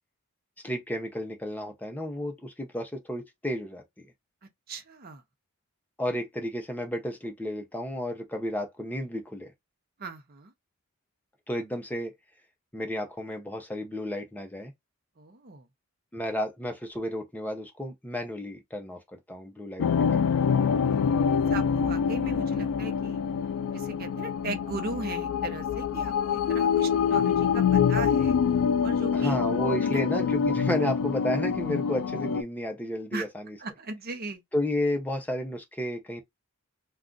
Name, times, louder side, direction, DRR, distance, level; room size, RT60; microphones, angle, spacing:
voice 1, 0.6-3.8 6.0-9.5 11.5-12.2 12.7-14.7 16.1-20.4 29.1-33.6 34.5-36.2, left 1 dB, 10° left, 0.6 m, -32 dB
voice 2, 4.7-5.2 10.0-10.5 15.2-15.7 20.9-21.0 21.2-23.2 23.7-28.4 28.8-29.4 29.8-30.0 33.1-33.3 33.6-34.4, right 3 dB, 45° right, 0.6 m, -38 dB
sound 1, 19.8-32.4, left 7 dB, 90° left, 0.3 m, -25 dB
2.5 x 2.3 x 3.7 m
head